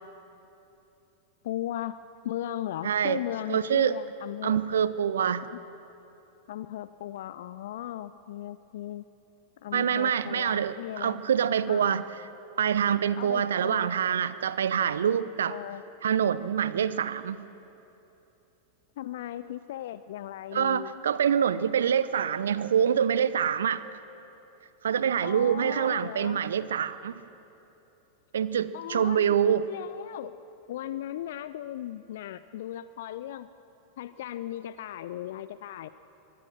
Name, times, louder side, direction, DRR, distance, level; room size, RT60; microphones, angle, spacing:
voice 1, 1.4-4.6 5.5-5.6 6.5-9.0 9.6-11.2 11.7-12.0 13.1-14.0 15.5-15.8 19.0-20.9 25.2-26.4 28.7-30.4 30.7-33.5 34.0-35.9, left 12 dB, 55° left, 15 dB, 0.5 m, -37 dB
voice 2, 2.8-3.2 3.5-4.0 4.4-5.5 9.7-12.0 12.6-15.6 16.0-17.4 20.5-23.8 24.8-27.2 28.3-29.7, right 8 dB, 65° right, 15 dB, 0.8 m, -25 dB
24.0 x 23.5 x 6.5 m, 3.0 s
figure-of-eight pair, 90°, 0 cm